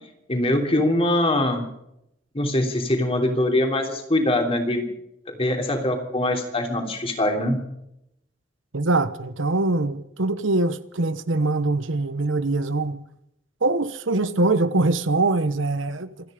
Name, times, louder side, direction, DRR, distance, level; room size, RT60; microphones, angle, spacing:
voice 1, 0.3-1.7 2.3-4.8 5.3-7.6, left 1 dB, 30° left, 3.2 m, -23 dB
voice 2, 8.7-13.0 13.6-16.1, right 2 dB, 85° right, 1.0 m, -23 dB
27.0 x 10.5 x 5.1 m
head